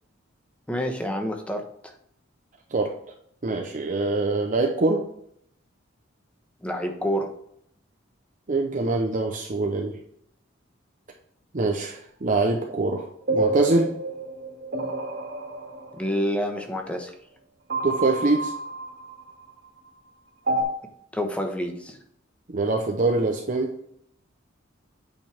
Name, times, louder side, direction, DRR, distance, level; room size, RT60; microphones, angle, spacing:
voice 1, 0.7-1.6 6.6-7.3 15.9-17.1 21.1-22.0, equal, 5° left, 4 dB, 1.1 m, -28 dB
voice 2, 3.4-5.0 8.5-10.0 11.5-13.1 13.3-13.9 17.8-18.5 22.5-23.7, right 3 dB, 40° right, 2 dB, 0.8 m, -24 dB
sound 1, 13.3-16.3 17.7-19.7 20.5-20.6, right 2 dB, 60° right, 2.2 m, -29 dB
8.9 x 5.3 x 3.5 m, 0.69 s
head